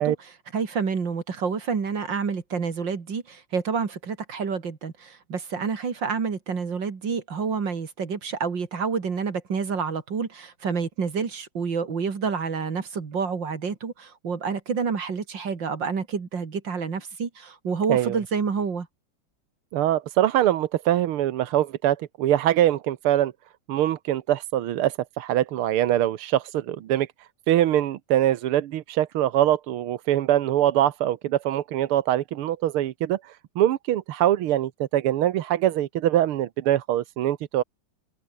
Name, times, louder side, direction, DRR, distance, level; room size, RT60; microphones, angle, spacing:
voice 1, 0.0-18.9, right 5 dB, 55° right, 3.1 m, -28 dB
voice 2, 19.7-23.3 23.7-27.1 27.5-37.6, right 12 dB, 85° right, 1.9 m, -23 dB
open air
omnidirectional pair, 2.4 m